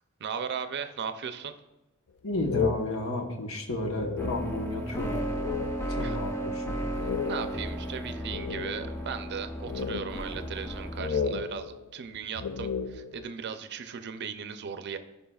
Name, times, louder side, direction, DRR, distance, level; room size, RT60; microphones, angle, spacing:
voice 1, 0.2-1.5 6.0-6.2 7.0-15.0, right 6 dB, 55° right, 9 dB, 0.5 m, -37 dB
voice 2, 2.2-5.2 5.9-6.8, left 1 dB, 75° left, 3 dB, 1.1 m, -32 dB
sound 1, 2.3-4.8 5.2-6.1 6.4-6.5 6.9-9.1 9.6-10.7 11.0-13.3, left 6 dB, 60° left, 0.4 m, -34 dB
sound 2, 4.2-11.1, equal, 10° left, 0.7 m, -34 dB
14.0 x 5.5 x 2.3 m, 1.0 s
head